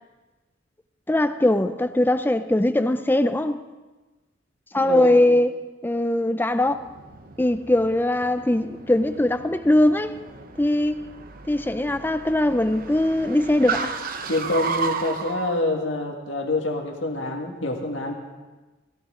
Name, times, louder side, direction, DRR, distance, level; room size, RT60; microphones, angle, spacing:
voice 1, 1.1-3.6 4.7-5.5 5.8-6.9 7.4-10.2 10.6-11.1 11.5-13.9, left 1 dB, 10° left, 0.5 m, -21 dB
voice 2, 4.8-5.2 14.3-18.1, left 2 dB, 75° left, 1.8 m, -26 dB
Car, 6.6-15.5, right 4 dB, 45° right, 0.8 m, -34 dB
18.0 x 15.0 x 3.8 m
head